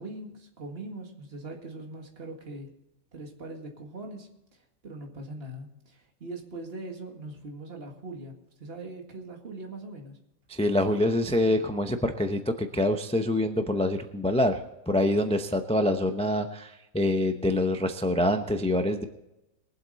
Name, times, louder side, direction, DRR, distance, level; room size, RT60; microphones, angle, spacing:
voice 1, 0.0-2.7 3.1-4.3 4.8-10.2, right 2 dB, 40° right, 2 dB, 2.1 m, -41 dB
voice 2, 10.5-14.6 14.9-19.0, left 1 dB, 10° left, 6 dB, 0.3 m, -25 dB
22.0 x 8.0 x 4.1 m, 0.90 s
omnidirectional pair, 1.6 m